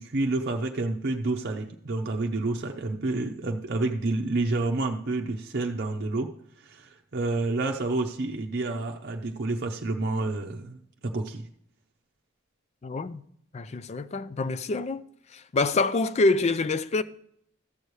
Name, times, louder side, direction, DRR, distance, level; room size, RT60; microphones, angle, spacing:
voice 1, 0.0-6.3 6.6-11.4, right 2 dB, 55° right, 0.7 m, -29 dB
voice 2, 12.8-13.3 13.5-15.0 15.3-17.0, left 3 dB, 35° left, 0.4 m, -26 dB
14.0 x 6.7 x 3.2 m
head